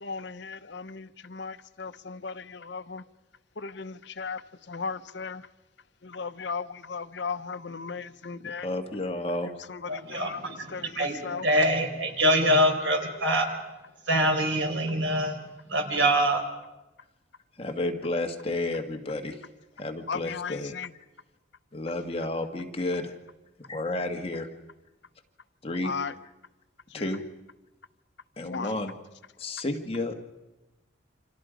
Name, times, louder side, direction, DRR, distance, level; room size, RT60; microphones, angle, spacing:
voice 1, 0.0-3.0 3.6-4.4 4.7-5.4 6.0-8.7 9.7-10.4 10.7-10.9 11.2-11.4 20.1-20.9 25.8-26.1 28.4-28.7, left 5 dB, 60° left, 0.8 m, -36 dB
voice 2, 8.4-9.5 17.6-19.4 19.8-20.7 21.7-23.1 23.7-24.5 25.6-25.9 26.9-27.2 28.4-28.9 29.4-30.1, left 2 dB, 30° left, 1.7 m, -31 dB
voice 3, 9.9-13.5 14.1-15.4 15.7-16.4, equal, 70° right, 4.7 m, -24 dB
29.0 x 26.5 x 5.2 m
head